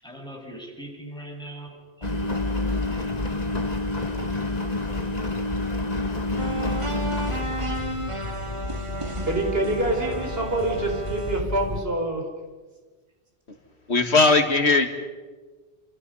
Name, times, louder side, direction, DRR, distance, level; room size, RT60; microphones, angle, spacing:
voice 1, 0.0-3.4, right 1 dB, 5° left, -1 dB, 6.6 m, -42 dB
Engine, 2.0-11.8, left 2 dB, 40° left, 1.9 m, -29 dB
sound 1, 6.4-11.4, right 1 dB, 30° right, 2.2 m, -33 dB
voice 2, 9.3-12.2, right 1 dB, 65° right, 2 dB, 5.0 m, -26 dB
voice 3, 13.9-14.9, left 3 dB, 90° left, 7 dB, 2.4 m, -18 dB
28.5 x 28.0 x 5.6 m, 1.4 s
omnidirectional pair, 1.1 m